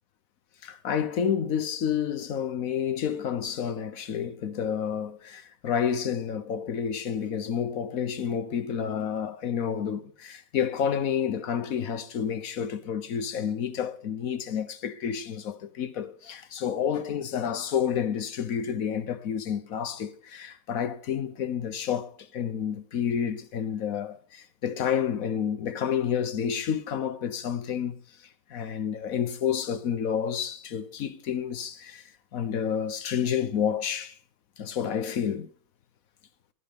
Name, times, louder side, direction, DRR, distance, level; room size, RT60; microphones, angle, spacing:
voice 1, 0.6-28.0 28.5-34.2 34.6-35.5, left 8 dB, 55° left, 1.0 m, -30 dB
15.5 x 11.0 x 5.2 m
omnidirectional pair, 2.4 m